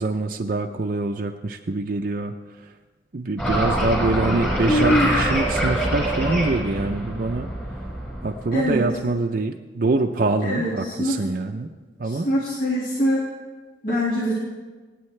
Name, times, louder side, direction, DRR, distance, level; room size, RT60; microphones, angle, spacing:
voice 1, 0.0-2.7 3.1-7.5 8.2-11.7 12.0-12.3, right 3 dB, 50° right, 4 dB, 0.5 m, -25 dB
sound 1, 3.4-8.8, right 1 dB, 10° left, 3.8 m, -25 dB
voice 2, 4.7-5.1 8.5-8.8 10.4-11.2 12.0-13.3 13.8-14.4, equal, 50° left, -6 dB, 2.1 m, -23 dB
24.5 x 9.3 x 3.3 m, 1.4 s
head